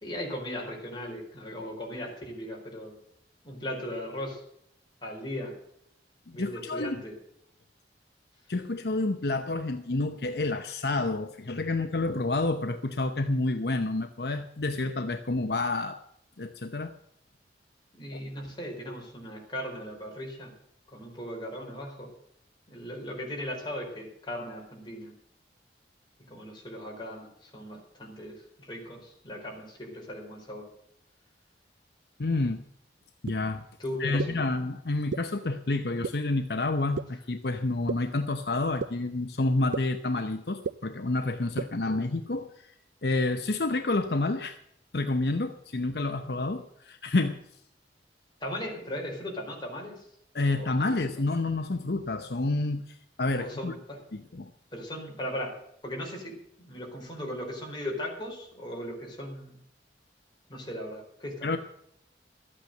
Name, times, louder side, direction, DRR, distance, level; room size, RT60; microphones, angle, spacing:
voice 1, 0.0-3.0 3.4-4.4 5.0-5.6 6.3-7.2 17.9-20.5 20.9-22.1 22.7-25.1 26.3-30.7 33.8-34.4 48.4-50.1 50.5-51.1 53.3-54.0 54.3-59.6 60.5-61.6, equal, 25° left, -1 dB, 4.3 m, -38 dB
voice 2, 6.3-7.0 8.5-16.0 16.4-17.0 18.1-18.2 32.2-32.6 33.2-33.6 34.0-42.7 43.0-44.6 44.9-47.4 50.3-53.7 54.1-54.5 61.4-61.6, left 2 dB, 60° left, 8 dB, 0.8 m, -29 dB
sound 1, 33.3-33.4 34.2-34.3 35.1-35.2 36.0-36.1 37.0-37.1 37.9-38.0 38.8-38.9 39.7-39.8 40.6-40.7 41.6-41.7, right 5 dB, 90° right, 0.4 m, -29 dB
13.5 x 8.9 x 7.7 m, 0.74 s
head